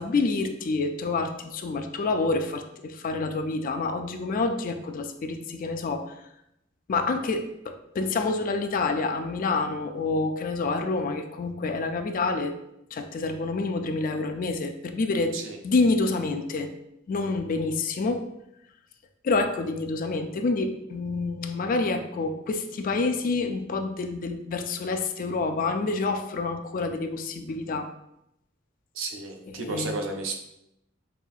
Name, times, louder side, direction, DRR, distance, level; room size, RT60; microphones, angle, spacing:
voice 1, 0.0-6.1 6.9-12.5 12.9-15.4 15.6-16.7 17.1-18.2 19.2-27.9 29.5-30.0, left 3 dB, 45° left, 7 dB, 0.3 m, -28 dB
voice 2, 28.9-30.4, right 3 dB, 75° right, 3 dB, 0.6 m, -32 dB
5.4 x 2.7 x 2.4 m, 0.82 s
head